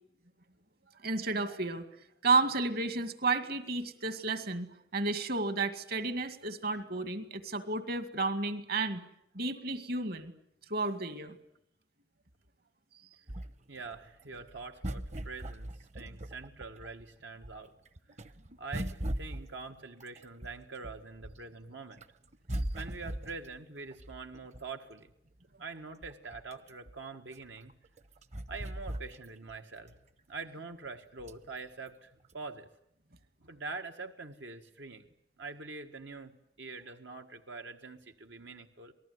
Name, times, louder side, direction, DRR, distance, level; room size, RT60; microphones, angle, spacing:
voice 1, 1.0-1.8 2.2-9.0 9.3-10.3 10.7-11.4, right 3 dB, 60° right, 11 dB, 2.2 m, -32 dB
sound 1, 13.3-17.0 17.4-21.5 21.9-24.9 25.4-25.5 25.8-29.6 29.9-30.0 31.2-31.6 32.3-32.4, right 1 dB, 40° right, 1.0 m, -40 dB
voice 2, 13.7-17.7 18.6-22.0 22.7-25.1 25.6-27.7 28.5-30.0 30.3-32.7 33.4-35.0 35.4-36.3 36.6-38.9, right 4 dB, 85° right, 5 dB, 1.7 m, -44 dB
28.0 x 19.5 x 9.5 m, 0.77 s
head